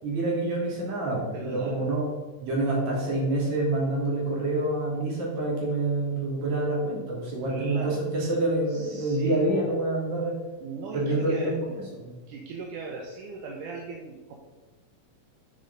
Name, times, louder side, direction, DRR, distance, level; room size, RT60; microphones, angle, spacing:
voice 1, 0.0-2.1 2.4-10.4 10.9-11.7 12.0-12.2, right 2 dB, 60° right, -3 dB, 4.0 m, -27 dB
voice 2, 1.3-1.9 7.5-8.1 8.7-9.6 10.6-11.5 12.3-14.3, right 4 dB, 80° right, 0 dB, 2.5 m, -38 dB
8.8 x 8.4 x 4.0 m, 1.3 s
omnidirectional pair, 3.7 m